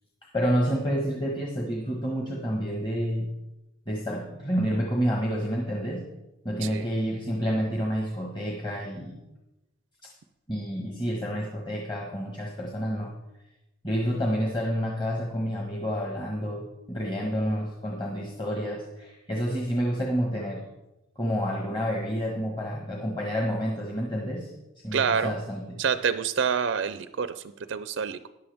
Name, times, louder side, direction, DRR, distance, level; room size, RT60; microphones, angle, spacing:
voice 1, 0.2-3.3 3.9-6.1 6.4-9.2 10.0-10.1 10.5-13.1 13.8-20.6 21.2-24.5 24.8-25.8, equal, 25° left, -1 dB, 1.4 m, -29 dB
voice 2, 24.9-25.4 25.8-28.3, right 6 dB, 65° right, 13 dB, 0.4 m, -27 dB
14.0 x 10.5 x 3.5 m, 0.98 s
head